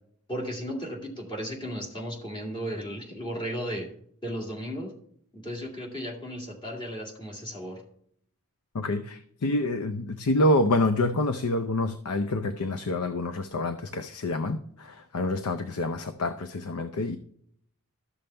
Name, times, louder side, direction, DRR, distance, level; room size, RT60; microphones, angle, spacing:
voice 1, 0.3-3.9 4.2-4.9 5.3-7.8, equal, 20° left, 2.2 m, -35 dB
voice 2, 8.7-17.2, left 2 dB, 85° left, 0.6 m, -27 dB
13.0 x 6.9 x 3.3 m
head